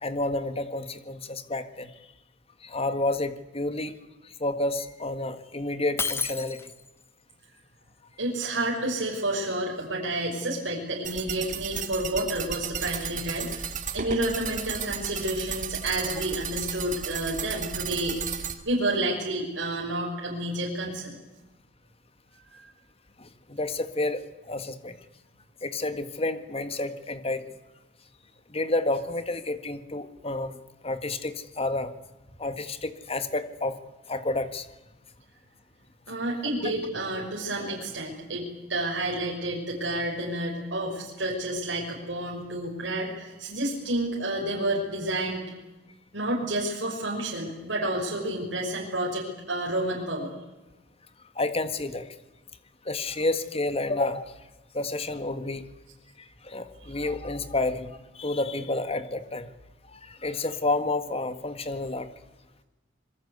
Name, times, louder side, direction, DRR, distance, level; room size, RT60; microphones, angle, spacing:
voice 1, 0.0-1.9 2.6-4.0 4.2-6.6 23.2-25.0 25.6-27.6 28.5-31.9 32.4-33.8 34.1-34.7 51.4-52.1 52.9-54.3 54.7-55.6 56.4-59.5 59.9-62.1, left 2 dB, 30° left, 10 dB, 1.7 m, -30 dB
Shatter, 6.0-7.0, left 4 dB, 15° left, 1.1 m, -30 dB
voice 2, 8.2-18.2 18.6-21.2 22.5-22.7 36.1-45.5 46.1-50.3 56.8-56.9, right 1 dB, 70° right, -3 dB, 5.9 m, -30 dB
sound 1, 11.0-18.5, right 7 dB, 45° right, 2.4 m, -34 dB
26.0 x 22.5 x 8.2 m, 1.1 s
head